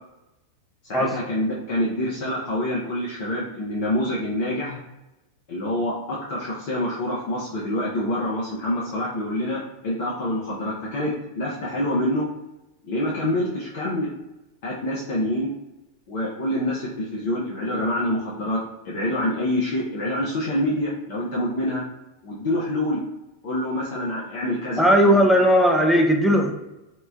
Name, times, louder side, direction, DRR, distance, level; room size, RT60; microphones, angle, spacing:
voice 1, 0.9-4.8 5.5-12.3 12.8-14.1 14.6-15.5 16.1-21.8 22.2-23.0 23.4-25.2, left 1 dB, 50° left, -5 dB, 0.6 m, -26 dB
voice 2, 24.8-26.5, equal, ahead, 0 dB, 0.5 m, -17 dB
3.7 x 2.1 x 2.4 m, 0.96 s
figure-of-eight pair, 90°, 0 cm